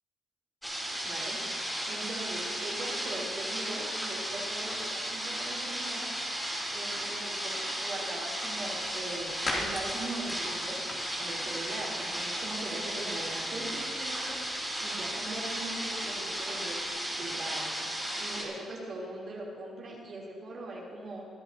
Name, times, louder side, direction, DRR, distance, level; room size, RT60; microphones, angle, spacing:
sound 1, 0.6-18.4, equal, ahead, 3.6 m, -35 dB
voice 1, 1.0-1.5 1.9-6.1 6.7-10.8 11.2-14.5 14.8-16.8 17.2-17.8 18.2-21.3, right 2 dB, 50° right, -5 dB, 3.7 m, -40 dB
sound 2, 8.2-16.9, left 1 dB, 40° left, 3.2 m, -44 dB
21.5 x 10.5 x 3.0 m, 2.3 s
cardioid pair, 90°, 0 cm